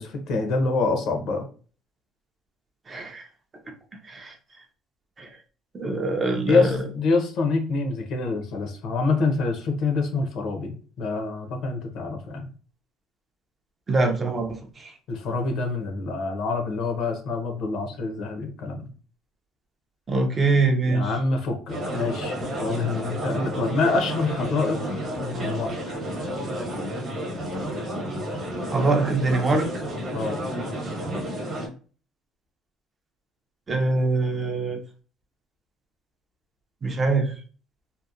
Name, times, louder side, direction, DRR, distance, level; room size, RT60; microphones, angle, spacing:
voice 1, 0.0-1.5 6.5-12.5 15.1-18.9 20.9-26.0 30.1-30.4, left 3 dB, 60° left, 4 dB, 0.6 m, -26 dB
voice 2, 2.9-3.3 4.1-4.3 5.2-5.3 5.7-6.8 13.9-14.9 20.1-21.1 28.7-29.7 33.7-34.8 36.8-37.3, right 3 dB, 20° right, 3 dB, 0.4 m, -23 dB
sound 1, 21.7-31.7, equal, 40° right, 0.9 m, -31 dB
2.8 x 2.0 x 2.4 m, 0.39 s
cardioid pair, 150°, 0 cm